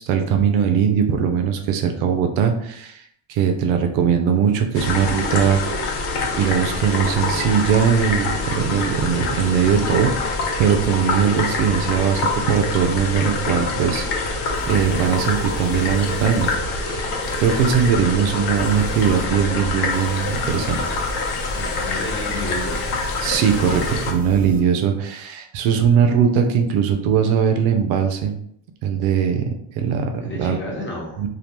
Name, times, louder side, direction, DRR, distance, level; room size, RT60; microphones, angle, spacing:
voice 1, 0.0-3.0 3.3-5.9 6.3-14.0 14.7-16.5 16.8-17.1 17.4-20.8 23.2-28.3 28.8-29.5 29.8-30.1 30.4-30.6 31.2-31.3, right 7 dB, 90° right, 5 dB, 0.6 m, -20 dB
sound 1, 4.7-24.1, left 3 dB, 80° left, 0.7 m, -25 dB
sound 2, 13.9-14.0 14.5-16.6 17.2-17.9 18.5-19.3 19.9-24.6, right 1 dB, 20° right, 0.5 m, -39 dB
voice 2, 21.5-22.8 30.2-31.3, left 1 dB, 25° left, -3 dB, 1.0 m, -32 dB
2.3 x 2.1 x 3.0 m, 0.70 s
supercardioid pair, 90°, 48 cm